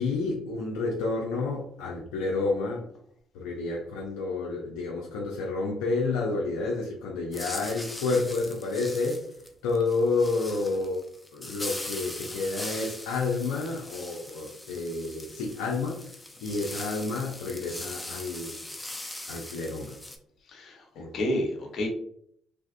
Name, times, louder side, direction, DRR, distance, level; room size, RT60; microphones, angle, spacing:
voice 1, 0.0-2.9 3.3-9.3 9.6-11.0 11.3-18.6 19.3-19.9 21.0-21.1, left 3 dB, 90° left, -2 dB, 0.5 m, -30 dB
sound 1, 7.3-20.2, left 1 dB, 15° left, 0.5 m, -40 dB
voice 2, 20.5-21.9, left 1 dB, 60° left, 1 dB, 0.9 m, -30 dB
3.3 x 2.4 x 2.5 m, 0.66 s
supercardioid pair, 65°, 0 cm